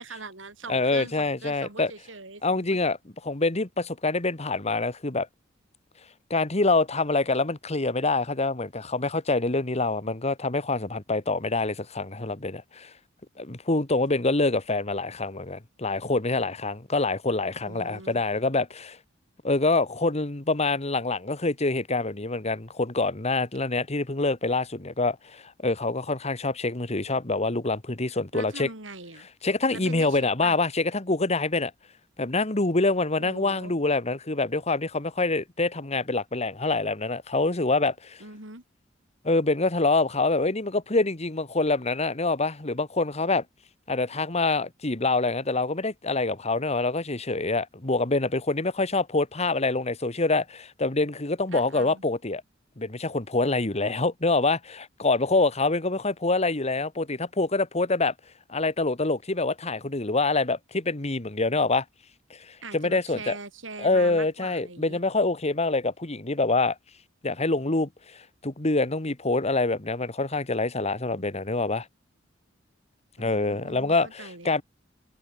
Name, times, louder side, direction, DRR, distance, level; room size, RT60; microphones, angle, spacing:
voice 1, 0.0-2.8 17.7-18.2 28.3-29.3 29.7-30.6 33.2-33.7 38.2-38.6 51.5-52.0 62.6-65.0 73.2-74.5, right 3 dB, 75° right, 7.3 m, -42 dB
voice 2, 0.7-1.9 2.4-3.0 3.2-5.3 6.3-12.9 13.4-19.0 19.4-28.7 29.4-31.7 32.2-38.2 39.2-43.4 43.9-52.4 52.8-58.1 58.5-61.8 62.3-63.4 63.8-66.7 67.2-71.9 73.2-74.6, left 3 dB, 35° left, 1.7 m, -26 dB
head